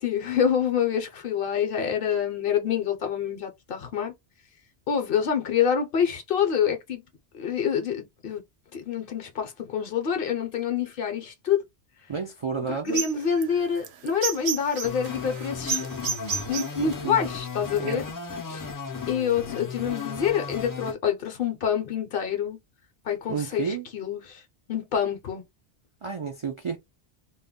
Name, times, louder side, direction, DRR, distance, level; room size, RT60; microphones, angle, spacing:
voice 1, 0.0-4.1 4.9-7.0 7.3-8.4 8.7-11.6 12.7-15.9 16.5-18.0 18.5-18.7 19.1-22.6 23.0-24.4 24.7-25.4, left 7 dB, 60° left, 0.7 m, -27 dB
voice 2, 12.1-13.0 16.8-17.3 17.8-18.0 23.3-23.9 26.0-26.8, right 6 dB, 55° right, 0.3 m, -31 dB
sound 1, 12.9-17.9, right 6 dB, 75° right, 0.8 m, -32 dB
sound 2, 14.8-20.9, left 6 dB, 35° left, 0.3 m, -35 dB
2.2 x 2.1 x 3.5 m
omnidirectional pair, 1.1 m